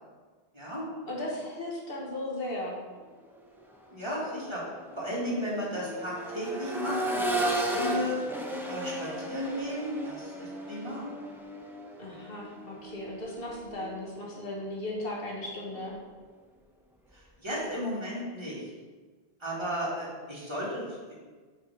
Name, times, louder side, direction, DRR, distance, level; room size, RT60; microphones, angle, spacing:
voice 1, 0.5-0.9 3.9-4.6 5.0-8.2 8.7-11.1 17.1-18.6 19.4-21.1, equal, 25° right, -7 dB, 1.9 m, -34 dB
voice 2, 1.1-2.8 12.0-15.9, left 1 dB, 65° left, -3 dB, 1.4 m, -36 dB
Accelerating revving vroom, 3.6-3.7 4.2-14.1 15.8-15.9, right 1 dB, 5° right, 0.5 m, -35 dB
6.4 x 4.1 x 4.8 m, 1.4 s
omnidirectional pair, 1.0 m